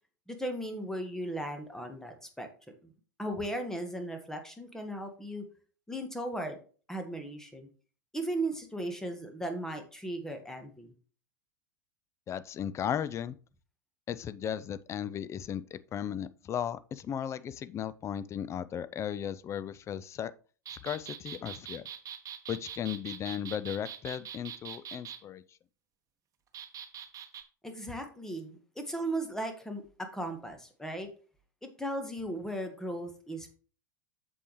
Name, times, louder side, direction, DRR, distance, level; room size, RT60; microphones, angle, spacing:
voice 1, 0.3-2.5 3.2-5.4 5.9-6.6 6.9-7.7 8.1-10.9 27.6-31.1 31.6-33.5, right 1 dB, 5° left, 1.5 m, -37 dB
voice 2, 12.3-13.3 14.1-20.3 20.8-21.8 22.5-25.4, left 9 dB, 25° left, 0.6 m, -36 dB
sound 1, 20.7-25.2 26.5-27.4, right 9 dB, 30° right, 1.3 m, -43 dB
8.3 x 7.3 x 3.2 m
figure-of-eight pair, 90°, 11 cm